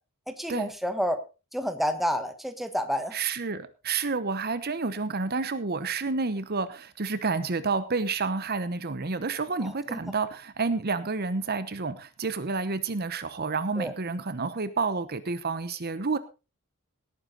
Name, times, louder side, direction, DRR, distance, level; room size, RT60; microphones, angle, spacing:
voice 1, 0.3-1.2 1.5-3.2 9.6-10.0 13.8-13.9, equal, ahead, 8 dB, 1.4 m, -29 dB
voice 2, 3.1-16.2, right 4 dB, 45° right, 13 dB, 0.9 m, -29 dB
18.0 x 9.7 x 4.0 m, 0.31 s
head